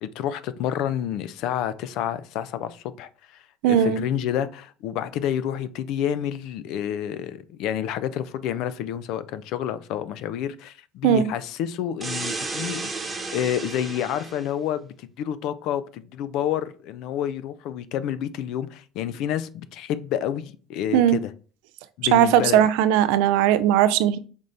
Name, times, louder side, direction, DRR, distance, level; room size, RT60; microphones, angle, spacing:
voice 1, 0.0-21.3 22.0-22.6, left 10 dB, 70° left, 0.4 m, -29 dB
voice 2, 3.6-4.0 11.0-11.3 20.9-21.2 22.1-24.2, right 11 dB, 80° right, 0.3 m, -18 dB
sound 1, 12.0-14.5, right 3 dB, 15° right, 1.0 m, -32 dB
5.1 x 2.7 x 3.3 m
supercardioid pair, 100°, 0 cm